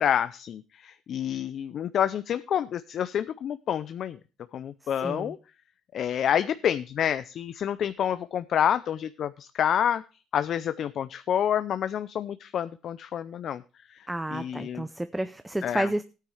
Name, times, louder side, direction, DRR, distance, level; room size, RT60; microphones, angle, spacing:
voice 1, 0.0-4.2 4.5-5.4 5.9-10.0 10.3-13.6 13.9-14.1 14.3-14.8 15.6-15.9, left 9 dB, 55° left, 13 dB, 0.4 m, -28 dB
voice 2, 5.0-5.4 14.1-16.0, right 1 dB, 10° right, 11 dB, 0.5 m, -31 dB
14.5 x 9.2 x 3.3 m, 0.32 s
cardioid pair, 105°, 0 cm